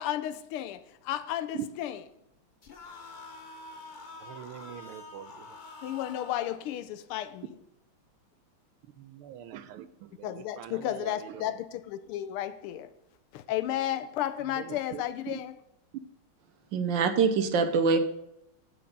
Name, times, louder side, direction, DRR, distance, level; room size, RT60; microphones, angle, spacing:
voice 1, 0.0-2.0 5.8-7.6 10.2-12.9 13.3-15.5, left 12 dB, 90° left, 1.6 m, -33 dB
sound 1, 2.6-6.6, left 3 dB, 75° left, 0.4 m, -46 dB
voice 2, 4.2-5.5 9.0-11.5 14.6-15.0 17.9-18.0, right 11 dB, 90° right, 1.6 m, -42 dB
voice 3, 16.7-18.0, right 5 dB, 65° right, 1.4 m, -24 dB
7.9 x 7.7 x 5.3 m
omnidirectional pair, 2.4 m